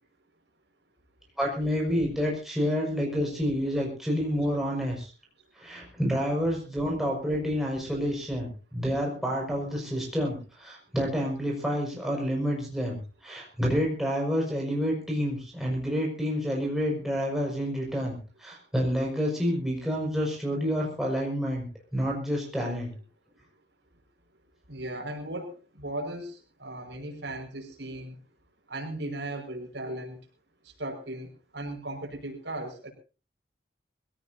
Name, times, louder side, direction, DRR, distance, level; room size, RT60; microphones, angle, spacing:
voice 1, 1.4-5.1 5.6-22.9, equal, ahead, -2 dB, 5.8 m, -29 dB
voice 2, 24.7-28.2 28.7-30.2 30.8-32.9, right 1 dB, 75° right, 2 dB, 5.5 m, -37 dB
23.5 x 17.0 x 2.8 m, 0.35 s
head